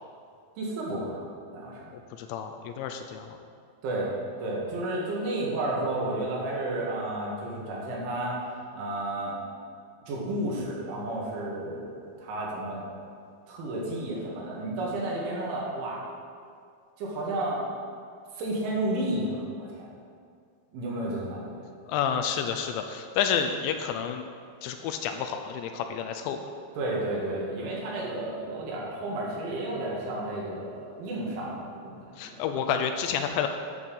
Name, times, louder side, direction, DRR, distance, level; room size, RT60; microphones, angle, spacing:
voice 1, 0.6-1.2 1.5-1.9 3.8-4.1 4.4-9.4 10.1-11.9 12.2-12.8 13.5-16.0 17.0-17.6 18.4-19.9 20.7-21.6 26.8-32.0 32.3-32.4, right 1 dB, 80° right, -4 dB, 4.4 m, -32 dB
voice 2, 2.2-3.3 21.9-24.3 24.6-26.4 32.2-33.5, left 7 dB, 85° left, 6 dB, 2.8 m, -29 dB
11.0 x 5.7 x 6.9 m, 2.2 s
omnidirectional pair, 5.4 m